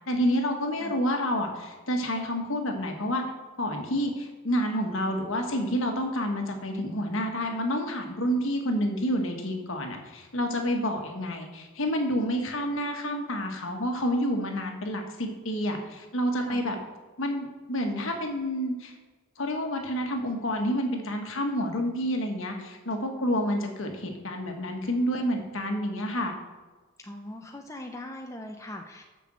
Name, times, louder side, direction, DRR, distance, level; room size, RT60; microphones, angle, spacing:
voice 1, 0.0-3.2 3.6-16.7 17.2-18.9 19.4-26.3, equal, 65° left, 3 dB, 1.5 m, -29 dB
voice 2, 27.0-29.0, left 1 dB, 15° left, 3 dB, 0.6 m, -41 dB
7.0 x 6.0 x 7.4 m, 1.3 s
head